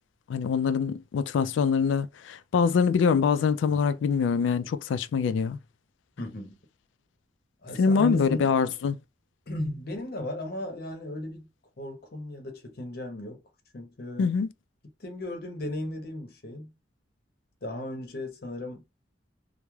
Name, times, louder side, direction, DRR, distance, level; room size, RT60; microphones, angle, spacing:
voice 1, 0.3-5.6 7.8-9.0 14.2-14.5, left 6 dB, 90° left, 0.3 m, -24 dB
voice 2, 6.2-6.6 7.6-8.6 9.5-11.5 11.8-13.4 13.7-14.4 14.8-16.7 17.6-18.8, left 1 dB, 55° left, 0.7 m, -36 dB
2.3 x 2.0 x 3.0 m
head